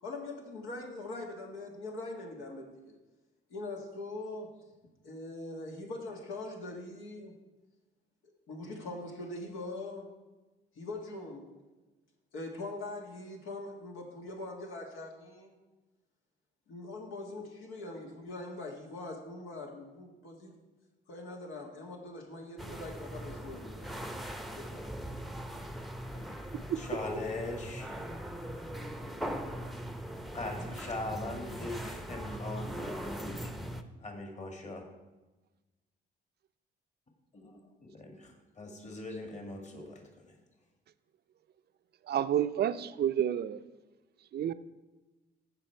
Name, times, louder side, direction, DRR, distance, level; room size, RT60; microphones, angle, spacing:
voice 1, 0.0-3.0 3.5-4.5 5.0-7.3 8.5-10.1 10.8-11.5 12.3-15.6 16.7-20.5 21.1-24.1 24.5-24.9, left 2 dB, 85° left, 1 dB, 1.7 m, -42 dB
sound 1, 22.6-33.8, right 1 dB, ahead, 0.7 m, -40 dB
voice 2, 26.3-28.0 30.3-33.5 34.0-34.9 37.3-40.4, left 2 dB, 35° left, 3 dB, 1.9 m, -41 dB
voice 3, 42.1-43.6 44.3-44.5, right 10 dB, 55° right, 12 dB, 0.5 m, -29 dB
14.5 x 5.0 x 4.5 m, 1.1 s
cardioid pair, 90°, 20 cm